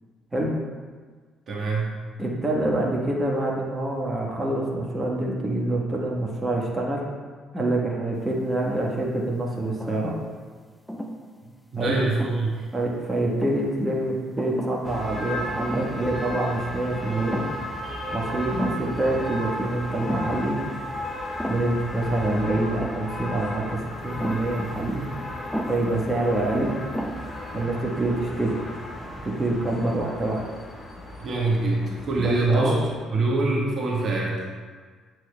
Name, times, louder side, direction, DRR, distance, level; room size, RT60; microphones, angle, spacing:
voice 1, 1.5-1.9 11.7-12.5 31.2-32.8 33.1-34.4, right 2 dB, 50° right, -3 dB, 1.3 m, -24 dB
voice 2, 2.2-7.0 7.5-10.1 11.7-12.0 12.7-17.4 18.1-20.6 21.5-25.0 25.7-26.8 27.5-28.5 29.2-30.4 32.2-32.8, right 1 dB, 20° right, -2 dB, 1.3 m, -26 dB
sound 1, 8.5-9.1 9.6-10.3 10.9-11.2 12.0-12.7 13.1-13.7 14.4-14.9 15.2-15.3 15.6-16.1 16.4-16.5 17.1-17.8 18.0-18.1 18.6-19.0 20.0-20.4 21.4-21.8 22.8-23.2 24.2-24.6 25.5-25.9 26.5-26.6 26.9-27.4, equal, 5° left, 0.7 m, -34 dB
sound 2, 14.8-33.0, left 1 dB, 35° left, 1.2 m, -35 dB
8.2 x 6.3 x 2.2 m, 1.5 s
hypercardioid pair, 50°, 0 cm